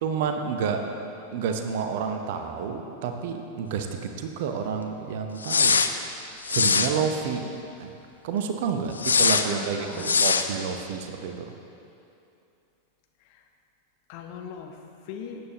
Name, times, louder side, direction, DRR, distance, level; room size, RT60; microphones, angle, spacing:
voice 1, 0.0-0.8 1.3-5.8 6.5-7.4 7.8-7.9 8.2-11.5, right 6 dB, 50° right, 5 dB, 0.8 m, -29 dB
sound 1, 5.4-5.9 6.4-6.9 9.0-9.5 10.0-10.5, left 5 dB, 75° left, 0.4 m, -21 dB
voice 2, 9.3-10.1 13.2-13.4 14.1-14.8 15.0-15.4, left 7 dB, 45° left, 4 dB, 0.9 m, -40 dB
13.0 x 9.0 x 3.0 m, 2.7 s
figure-of-eight pair, 90°, 0 cm